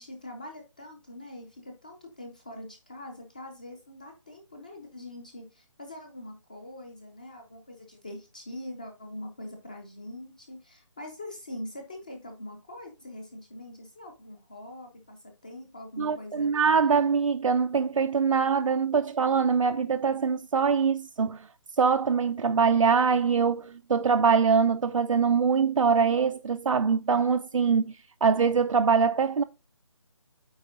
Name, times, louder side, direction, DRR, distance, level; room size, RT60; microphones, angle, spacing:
voice 1, 0.0-16.5, left 1 dB, 15° left, 0.5 m, -43 dB
voice 2, 16.0-21.4 21.8-27.9 28.2-29.4, right 5 dB, 80° right, 0.5 m, -23 dB
8.8 x 3.8 x 3.7 m
hypercardioid pair, 175°, 16 cm